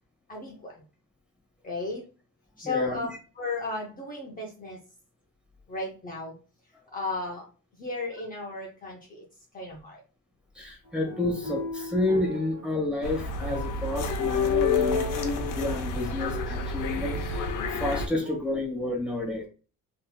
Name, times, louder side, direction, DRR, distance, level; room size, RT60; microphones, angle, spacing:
voice 1, 0.3-0.8 1.6-2.0 2.6-4.8 5.7-6.4 6.9-7.5 7.8-9.2 9.5-10.0, left 3 dB, 25° left, -1 dB, 0.6 m, -34 dB
voice 2, 2.6-3.0 10.5-19.5, left 2 dB, 5° right, 0 dB, 1.0 m, -30 dB
sound 1, 10.9-18.4, right 1 dB, 25° right, 1.0 m, -40 dB
sound 2, 13.0-18.1, left 4 dB, 65° left, 0.7 m, -29 dB
3.8 x 2.8 x 2.2 m, 0.35 s
cardioid pair, 145°, 34 cm